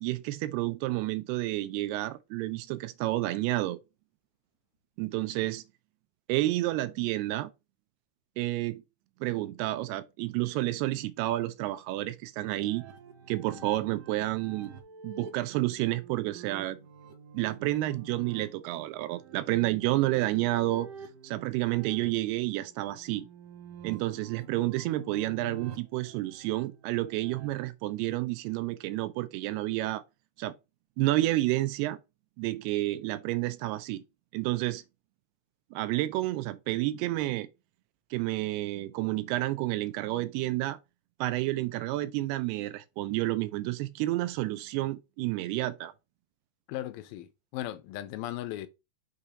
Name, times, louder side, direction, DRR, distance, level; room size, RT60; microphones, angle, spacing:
voice 1, 0.0-3.8 5.0-5.6 6.3-7.5 8.4-8.8 9.2-12.8 13.3-14.7 15.0-16.8 17.3-20.9 21.2-23.3 23.8-30.0 30.4-30.5 31.0-32.0 32.4-34.0 34.3-34.8 35.7-37.5 38.1-40.8 41.2-45.9, right 17 dB, 85° right, 2.6 m, -30 dB
sound 1, 12.4-27.5, right 5 dB, 70° right, 2.2 m, -48 dB
voice 2, 13.5-13.9 46.7-48.7, left 14 dB, 80° left, 2.2 m, -38 dB
6.6 x 2.8 x 4.9 m
omnidirectional pair, 4.6 m